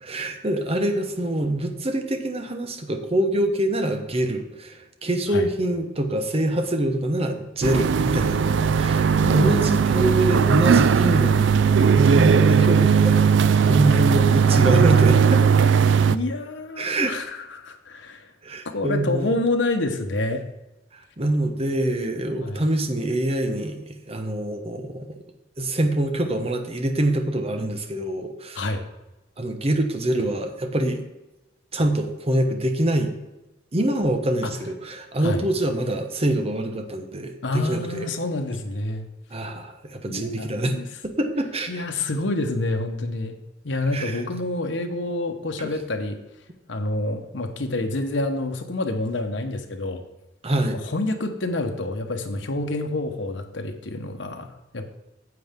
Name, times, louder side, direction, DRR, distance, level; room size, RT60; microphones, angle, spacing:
voice 1, 0.0-13.2 13.7-15.7 16.8-17.1 18.4-19.3 20.9-25.1 25.6-28.7 29.4-31.0 31.7-33.1 33.7-38.1 39.3-40.7 41.0-41.9 43.9-44.2 45.6-45.7 50.4-50.8, right 1 dB, 35° right, 6 dB, 1.0 m, -25 dB
sound 1, 7.6-16.2, right 6 dB, 75° right, 0.4 m, -18 dB
voice 2, 9.2-9.9 16.1-18.3 18.6-20.4 22.4-22.6 28.5-28.8 34.4-34.5 35.2-35.5 37.4-39.1 40.1-40.9 41.7-43.4 43.6-46.2 46.7-50.0 50.8-54.9, left 2 dB, 85° left, 5 dB, 1.1 m, -28 dB
9.5 x 7.8 x 3.6 m, 1.0 s
head